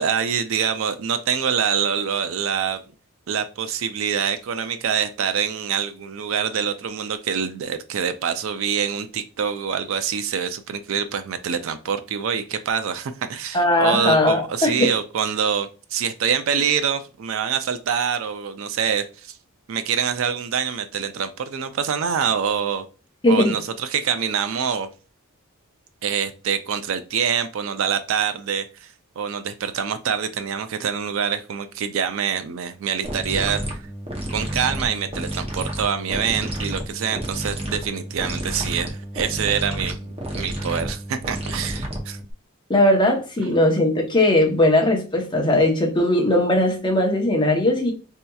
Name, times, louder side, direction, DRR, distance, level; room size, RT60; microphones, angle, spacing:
voice 1, 0.0-2.8 3.3-19.4 19.7-22.8 23.3-24.9 26.0-33.9 34.3-42.2 43.4-43.5, right 7 dB, 65° right, 0.4 m, -25 dB
voice 2, 13.5-14.9 23.2-23.5 42.7-47.9, left 1 dB, 20° left, 0.8 m, -19 dB
sound 1, 33.0-42.3, right 1 dB, 25° right, 0.7 m, -30 dB
4.2 x 2.8 x 2.3 m
head